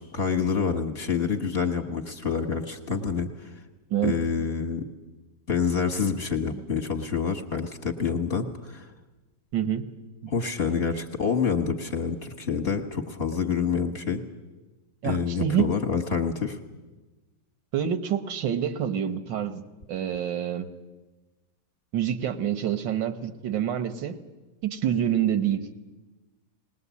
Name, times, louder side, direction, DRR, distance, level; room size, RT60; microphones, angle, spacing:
voice 1, 0.0-3.5 4.0-4.8 5.5-8.9 10.3-14.2 15.0-16.6, left 6 dB, 35° left, 3 dB, 1.5 m, -27 dB
voice 2, 9.5-9.8 15.0-15.7 17.7-19.6 19.9-20.7 21.9-24.2 24.6-25.7, right 9 dB, 80° right, 10 dB, 1.8 m, -27 dB
20.0 x 20.0 x 8.3 m, 1.2 s
omnidirectional pair, 1.9 m